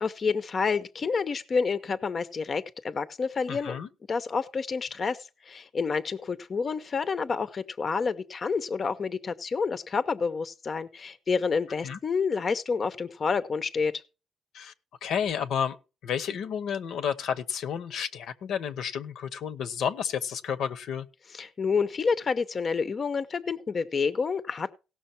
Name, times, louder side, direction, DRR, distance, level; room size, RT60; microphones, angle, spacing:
voice 1, 0.0-3.8 4.1-14.0 21.3-24.7, left 5 dB, 40° left, 0.7 m, -29 dB
voice 2, 3.5-3.9 11.8-12.0 14.5-14.7 15.0-15.8 16.0-21.1, left 8 dB, 75° left, 0.9 m, -31 dB
17.0 x 6.2 x 4.4 m
cardioid pair, 90°, 0 cm